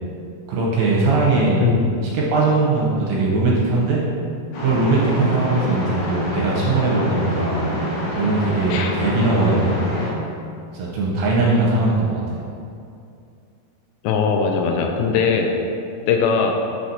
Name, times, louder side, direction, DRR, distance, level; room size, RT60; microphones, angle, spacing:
voice 1, 0.5-1.7 2.1-4.0 4.6-7.7 8.1-9.8 10.7-12.2, right 3 dB, 75° right, -4 dB, 2.3 m, -20 dB
sound 1, 4.5-10.1, equal, 65° left, 2.5 m, -26 dB
voice 2, 14.0-15.5 16.1-16.5, left 6 dB, 85° left, 2 dB, 2.4 m, -20 dB
6.3 x 4.2 x 4.0 m, 2.5 s
omnidirectional pair, 4.4 m